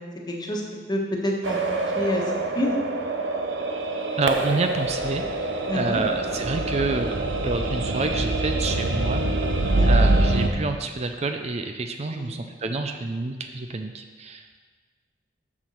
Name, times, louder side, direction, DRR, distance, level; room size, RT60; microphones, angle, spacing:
voice 1, 0.3-0.6 0.9-2.2 2.5-2.8 5.7-6.0 9.7-10.1 12.1-12.4, left 1 dB, 25° left, 0 dB, 1.3 m, -28 dB
sound 1, 1.4-10.5, right 2 dB, 80° right, 0.8 m, -25 dB
voice 2, 4.2-7.1 7.4-9.2 9.9-14.6, right 3 dB, 35° right, 6 dB, 0.4 m, -28 dB
7.2 x 6.1 x 6.4 m, 1.5 s
head